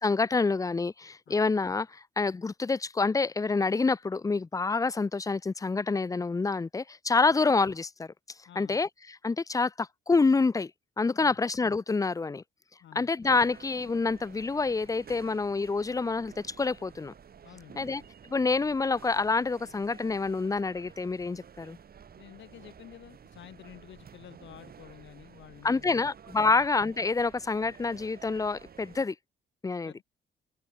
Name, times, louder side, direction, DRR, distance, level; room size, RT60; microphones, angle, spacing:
voice 1, 0.0-8.1 8.6-10.7 11.0-12.4 12.9-17.1 17.8-18.0 18.3-21.8 25.6-29.1 29.6-29.9, left 4 dB, 15° left, 0.5 m, -27 dB
voice 2, 8.5-8.8 11.2-11.4 12.8-13.1 17.4-18.0 22.2-26.1 26.4-26.7 29.8-30.0, left 11 dB, 70° left, 2.0 m, -50 dB
sound 1, 13.2-29.0, right 7 dB, 50° right, 3.7 m, -52 dB
cardioid pair, 90°, 20 cm